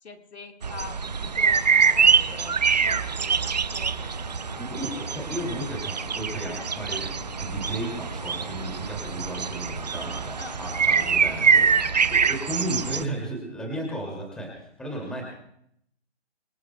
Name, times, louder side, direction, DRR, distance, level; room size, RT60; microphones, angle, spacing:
voice 1, 0.0-4.2 4.5-5.2 10.4-10.6, left 4 dB, 70° left, 4 dB, 1.9 m, -44 dB
sound 1, 0.6-13.0, right 6 dB, 40° right, 0.5 m, -24 dB
sound 2, 1.8-12.3, left 4 dB, 25° left, 0.6 m, -45 dB
voice 2, 4.6-7.1 7.4-15.2, right 1 dB, ahead, -2 dB, 2.5 m, -34 dB
25.5 x 19.0 x 2.3 m, 0.72 s
figure-of-eight pair, 160°, 34 cm